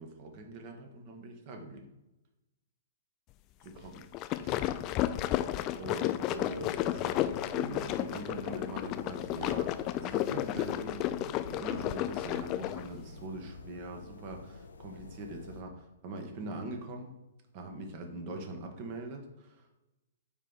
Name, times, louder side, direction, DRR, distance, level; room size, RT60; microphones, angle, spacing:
voice 1, 0.0-1.9 3.6-4.1 4.4-4.7 5.8-17.1 17.5-19.8, right 2 dB, 40° right, 3 dB, 1.4 m, -42 dB
sound 1, 4.0-12.9, left 14 dB, 35° left, 0.4 m, -32 dB
sound 2, 6.3-15.6, left 4 dB, 75° left, 0.6 m, -49 dB
8.9 x 3.4 x 4.1 m, 0.98 s
figure-of-eight pair, 115°, 0 cm